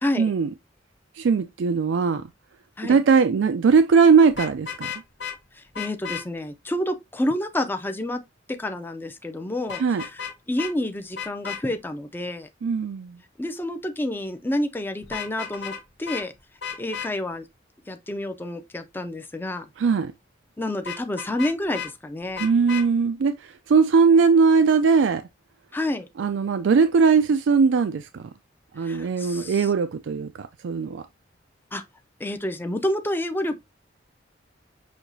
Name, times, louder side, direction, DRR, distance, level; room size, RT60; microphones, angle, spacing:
voice 1, 0.2-0.5 1.2-2.2 2.8-4.9 9.8-10.0 12.6-13.2 19.8-20.1 22.4-25.2 26.2-28.3 28.7-31.0, right 5 dB, 90° right, 0.4 m, -20 dB
Vehicle horn car horn honking, 4.3-5.4 5.7-6.2 9.7-10.3 10.6-10.7 11.2-11.6 15.0-15.8 16.1-16.2 16.6-17.1 20.9-21.9 22.4-22.9, left 7 dB, 70° left, 1.0 m, -33 dB
voice 2, 5.5-8.2 8.5-12.5 13.4-15.7 16.0-16.3 16.8-17.4 17.9-19.7 20.6-22.4 25.7-26.1 28.8-29.7 31.7-31.8 32.2-33.6, left 1 dB, 10° left, 0.5 m, -29 dB
6.2 x 2.8 x 2.7 m
head